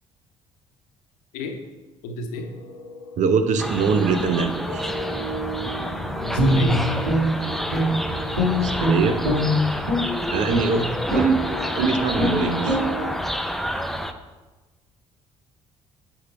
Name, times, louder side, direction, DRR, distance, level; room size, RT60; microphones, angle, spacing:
voice 1, 2.0-2.5 6.2-6.8 10.6-10.9, left 3 dB, 70° left, 5 dB, 0.9 m, -30 dB
sound 1, 2.3-13.2, right 1 dB, 90° left, 0.6 m, -36 dB
voice 2, 3.2-4.9 8.6-9.2 10.3-10.8 11.1-11.5 11.8-12.8, right 5 dB, 50° right, 8 dB, 0.7 m, -22 dB
sound 2, 3.6-14.1, equal, ahead, 0.5 m, -29 dB
Guitar, 6.3-8.1 8.3-10.1 10.5-10.7 11.1-11.4 11.7-11.9 12.1-12.4 12.6-12.8, equal, 85° right, 1.9 m, -22 dB
8.3 x 4.6 x 4.5 m, 1.2 s
hypercardioid pair, 50°, 16 cm